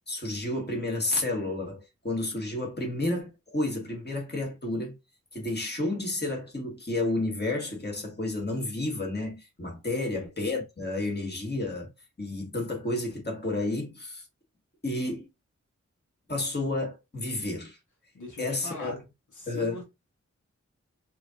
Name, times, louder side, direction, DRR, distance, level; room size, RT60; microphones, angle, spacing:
voice 1, 0.1-5.0 5.3-11.9 12.2-14.3 14.8-15.3 16.3-17.8 18.4-19.0 19.5-19.8, left 2 dB, 35° left, 1.6 m, -31 dB
voice 2, 9.9-10.3 18.1-18.9 19.3-19.8, left 2 dB, 85° left, 1.3 m, -41 dB
4.7 x 2.9 x 2.5 m
wide cardioid pair, 50°, 29 cm